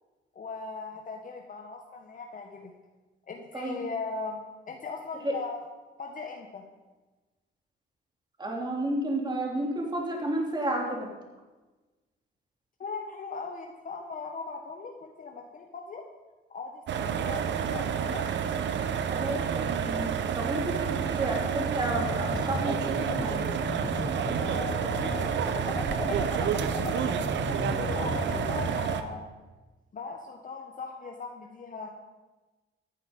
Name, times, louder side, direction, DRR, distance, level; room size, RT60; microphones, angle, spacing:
voice 1, 0.3-2.7 3.3-4.4 4.7-5.6 6.0-6.6 12.8-16.0 16.5-18.2 20.4-20.5 24.4-25.3 25.9-29.3 29.9-31.9, left 4 dB, 45° left, 2 dB, 1.4 m, -39 dB
voice 2, 8.4-11.1 19.1-23.5, right 1 dB, 20° right, 0 dB, 3.3 m, -31 dB
sound 1, 16.9-29.0, right 8 dB, 65° right, 1.0 m, -29 dB
sound 2, 21.9-28.7, left 4 dB, 20° left, 0.6 m, -36 dB
14.0 x 9.2 x 5.3 m, 1.2 s
cardioid pair, 90°, 20 cm